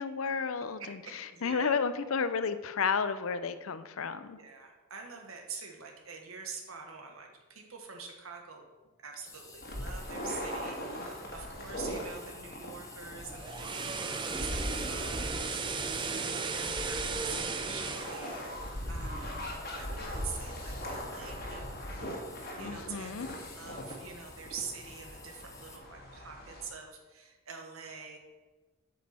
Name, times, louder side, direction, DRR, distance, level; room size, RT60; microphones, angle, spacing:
voice 1, 0.0-1.0 1.4-4.4 22.6-23.3, left 5 dB, 80° left, 12 dB, 0.6 m, -32 dB
voice 2, 0.8-1.8 4.3-8.7 9.0-19.5 19.7-23.2 23.5-28.2, right 5 dB, 80° right, 2 dB, 1.4 m, -46 dB
sound 1, 9.2-25.8, left 4 dB, 15° left, 0.8 m, -53 dB
sound 2, 9.6-26.6, equal, 45° left, 1.6 m, -40 dB
sound 3, 13.2-19.4 19.7-19.9, right 4 dB, 20° right, 0.5 m, -36 dB
8.1 x 6.6 x 4.3 m, 1.3 s
head